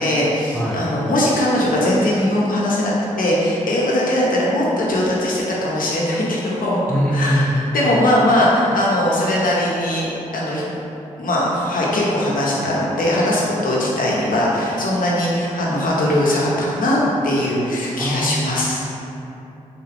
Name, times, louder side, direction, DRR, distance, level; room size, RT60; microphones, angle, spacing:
voice 1, 0.0-6.8 7.1-10.1 10.3-10.8 11.2-17.0 17.2-18.8, left 1 dB, 75° left, -5 dB, 0.8 m, -20 dB
voice 2, 6.9-7.5 18.0-18.8, equal, 5° left, -7 dB, 0.6 m, -22 dB
3.9 x 2.3 x 3.4 m, 2.9 s
supercardioid pair, 40°, 14 cm